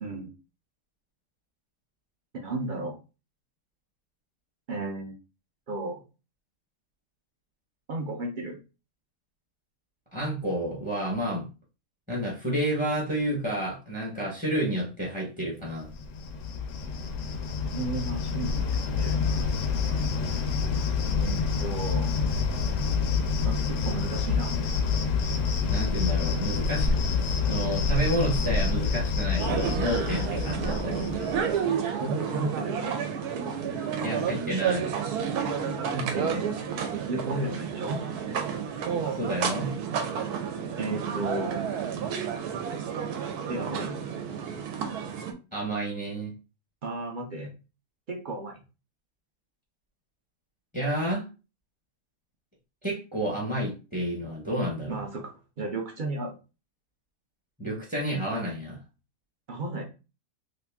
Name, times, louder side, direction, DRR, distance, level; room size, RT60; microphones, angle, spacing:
voice 1, 0.0-0.3 2.3-3.0 4.7-5.1 5.7-6.0 7.9-8.6 17.6-19.2 21.2-22.2 23.4-24.5 32.0-32.9 35.6-36.5 37.1-38.0 40.8-41.7 43.5-44.0 46.8-47.5 48.1-48.6 54.9-56.4 59.5-59.8, right 2 dB, 60° right, 2 dB, 0.5 m, -34 dB
voice 2, 10.1-11.4 12.1-15.9 25.7-31.2 34.0-34.9 39.1-39.8 45.5-46.3 50.7-51.3 52.8-55.0 57.6-58.8, right 1 dB, 10° right, -3 dB, 0.7 m, -30 dB
Cricket, 15.8-31.5, left 5 dB, 70° left, 0.8 m, -27 dB
sound 1, 29.4-45.3, right 7 dB, 90° right, 1.2 m, -31 dB
3.0 x 2.6 x 3.4 m, 0.31 s
omnidirectional pair, 1.6 m